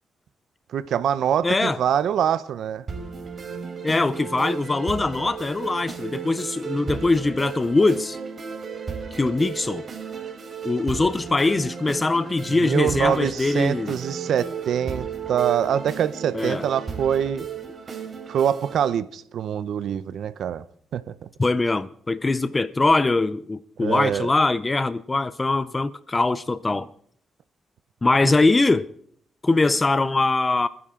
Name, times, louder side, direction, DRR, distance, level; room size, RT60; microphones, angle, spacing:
voice 1, 0.7-2.9 12.6-17.5 18.3-20.6 20.9-21.3 23.8-24.3 28.2-28.3, right 9 dB, 75° right, 0.6 m, -24 dB
voice 2, 1.4-1.8 3.8-8.2 9.1-9.9 10.6-14.0 16.3-16.7 21.4-26.9 28.0-28.9 29.4-30.7, left 3 dB, 25° left, 0.5 m, -22 dB
sound 1, 2.9-18.9, right 6 dB, 45° right, 3.2 m, -34 dB
26.5 x 10.5 x 3.7 m
cardioid pair, 80°, 0 cm